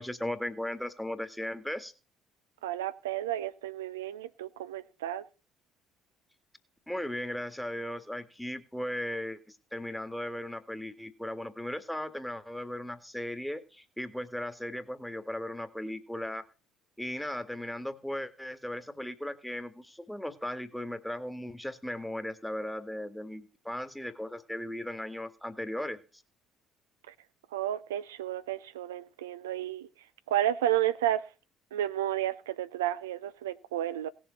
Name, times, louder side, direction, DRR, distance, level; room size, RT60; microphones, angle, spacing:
voice 1, 0.0-1.9 6.9-9.4 9.7-16.5 17.0-26.2, left 1 dB, 5° left, 1.8 m, -37 dB
voice 2, 2.6-5.2 27.1-27.2 27.5-29.9 30.3-31.2 31.7-34.1, right 12 dB, 75° right, 0.6 m, -32 dB
18.0 x 7.1 x 4.0 m
figure-of-eight pair, 50°, 0 cm